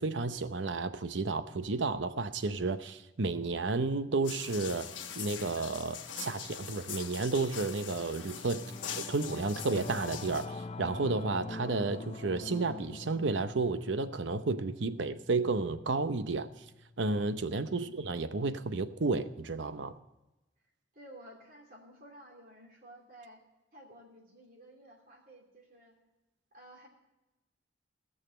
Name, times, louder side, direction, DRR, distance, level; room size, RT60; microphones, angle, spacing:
voice 1, 0.0-4.9 5.2-8.6 9.0-16.5 17.0-20.0, right 3 dB, 75° right, 11 dB, 0.8 m, -32 dB
sound 1, 4.2-10.5, left 8 dB, 80° left, 1.2 m, -43 dB
Singing / Musical instrument, 7.7-17.2, left 3 dB, 30° left, 0.4 m, -45 dB
voice 2, 20.9-23.4 23.7-25.9 26.5-26.9, right 1 dB, 45° right, 0 dB, 2.9 m, -53 dB
16.5 x 6.6 x 7.7 m, 1.0 s
head